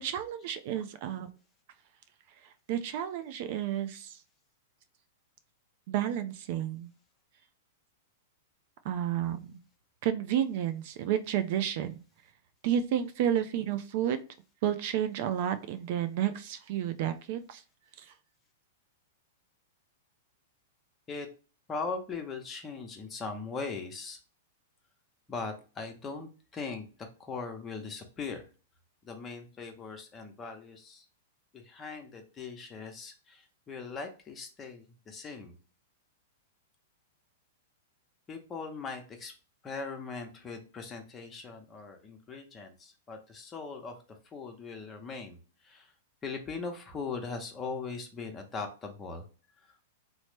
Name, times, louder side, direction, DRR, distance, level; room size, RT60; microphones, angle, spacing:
voice 1, 0.0-1.3 2.7-4.2 5.9-6.9 8.8-9.6 10.0-12.0 12.6-14.2 14.6-17.6 18.0-18.1, right 10 dB, 55° right, 10 dB, 0.4 m, -31 dB
voice 2, 21.7-24.2 25.3-26.9 27.2-28.4 29.1-31.0 31.7-33.4 33.7-35.5 38.3-39.3 39.6-43.9 44.3-45.4 45.7-45.8 46.2-49.2, left 4 dB, 25° left, 4 dB, 0.8 m, -39 dB
3.1 x 2.0 x 3.1 m, 0.35 s
hypercardioid pair, 115°, 0 cm